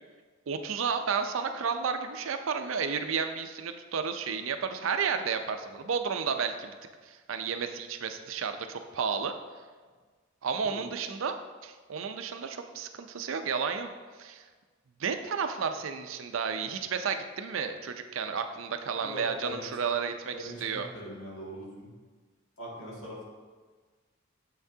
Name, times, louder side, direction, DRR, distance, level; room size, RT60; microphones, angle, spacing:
voice 1, 0.5-6.7 7.0-9.3 10.4-11.3 11.6-13.9 14.2-14.4 15.0-20.9, right 6 dB, 75° right, 7 dB, 0.5 m, -32 dB
voice 2, 19.0-19.7 20.4-21.9 22.6-23.2, equal, 80° left, -4 dB, 1.8 m, -41 dB
7.2 x 5.8 x 2.7 m, 1.4 s
head